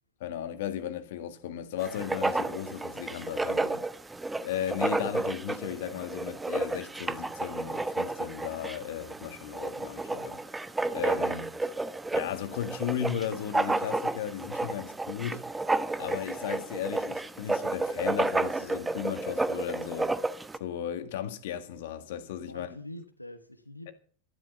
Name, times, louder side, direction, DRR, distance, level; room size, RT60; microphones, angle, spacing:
voice 1, 0.2-3.6 4.4-10.4 10.9-11.5 12.1-15.5 16.0-20.1 20.6-22.7 23.9-24.0, left 10 dB, 55° left, 1.9 m, -35 dB
Writing, 1.8-20.6, right 2 dB, 10° right, 0.8 m, -31 dB
voice 2, 3.5-3.8 22.5-23.9, left 1 dB, 85° left, 1.3 m, -44 dB
13.0 x 12.0 x 5.5 m
figure-of-eight pair, 90°, 0 cm